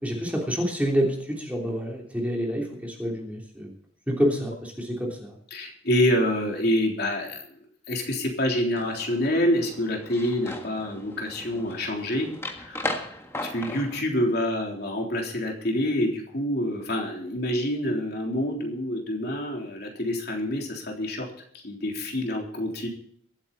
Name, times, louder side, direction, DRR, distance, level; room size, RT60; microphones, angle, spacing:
voice 1, 0.0-3.7 4.1-5.4, equal, 5° right, -1 dB, 3.2 m, -27 dB
voice 2, 5.5-7.6 7.9-12.3 12.6-13.0 13.5-21.3 21.5-22.9, left 1 dB, 50° left, 0 dB, 3.5 m, -27 dB
sound 1, 8.8-14.0, left 1 dB, 15° left, 1.6 m, -37 dB
23.5 x 9.0 x 4.2 m, 0.63 s
head